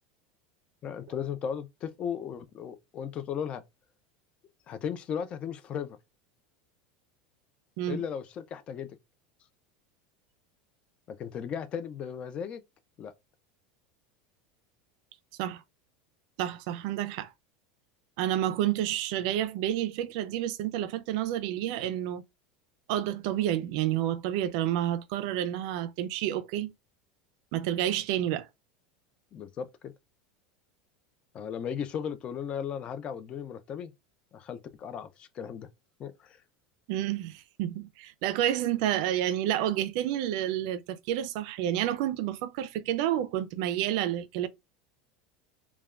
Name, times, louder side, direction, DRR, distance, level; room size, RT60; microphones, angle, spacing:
voice 1, 0.8-3.6 4.7-6.0 7.9-9.0 11.1-12.6 13.0-13.1 29.3-29.9 31.3-33.9 34.3-35.7 36.0-36.4, left 8 dB, 30° left, 0.4 m, -36 dB
voice 2, 16.4-17.3 18.2-22.2 22.9-26.7 27.5-28.5 36.9-44.5, right 12 dB, 60° right, 0.4 m, -29 dB
3.3 x 2.2 x 2.4 m
supercardioid pair, 155°, 4 cm